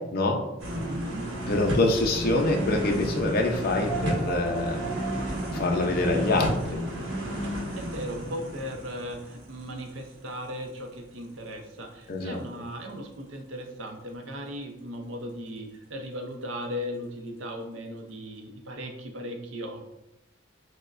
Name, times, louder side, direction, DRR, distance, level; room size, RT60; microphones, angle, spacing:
sound 1, 0.6-10.4 10.8-10.9, equal, 85° right, 1.0 m, -32 dB
voice 1, 0.9-1.3 7.4-19.9, equal, 70° right, 4 dB, 0.6 m, -37 dB
voice 2, 1.5-4.9 5.5-6.8 12.1-12.4, left 2 dB, 50° left, 1 dB, 0.5 m, -25 dB
sound 2, 3.9-8.6, right 4 dB, 5° left, 0.7 m, -38 dB
6.3 x 2.1 x 2.5 m, 0.92 s
head